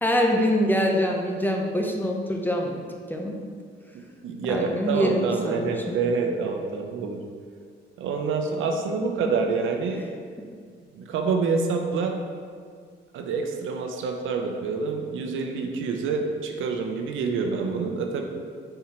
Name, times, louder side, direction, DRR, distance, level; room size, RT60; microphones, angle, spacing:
voice 1, 0.0-2.8 3.1-3.4 4.5-6.0, equal, 10° left, 1 dB, 0.8 m, -24 dB
voice 2, 4.2-7.2 8.0-10.0 10.9-12.1 13.1-18.2, right 4 dB, 80° right, 4 dB, 0.7 m, -27 dB
5.7 x 4.5 x 4.4 m, 2.1 s
cardioid pair, 90°, 20 cm